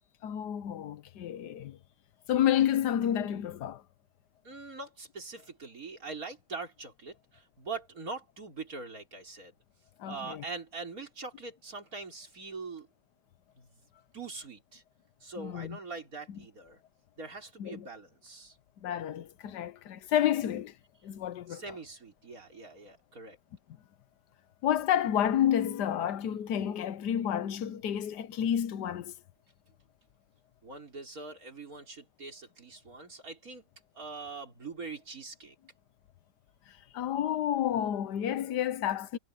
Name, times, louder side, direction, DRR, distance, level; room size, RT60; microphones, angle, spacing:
voice 1, 0.2-1.8 2.3-3.8 10.0-10.4 15.4-15.8 16.3-16.4 17.6-17.9 18.8-20.7 21.0-21.8 24.6-29.1 36.7-39.2, left 10 dB, 80° left, 1.4 m, -30 dB
voice 2, 4.4-9.5 10.1-12.9 13.6-13.7 14.1-14.8 15.2-16.8 17.2-18.6 21.5-23.4 30.6-33.6 34.0-35.5, right 4 dB, 55° right, 4.8 m, -43 dB
omnidirectional pair, 1.8 m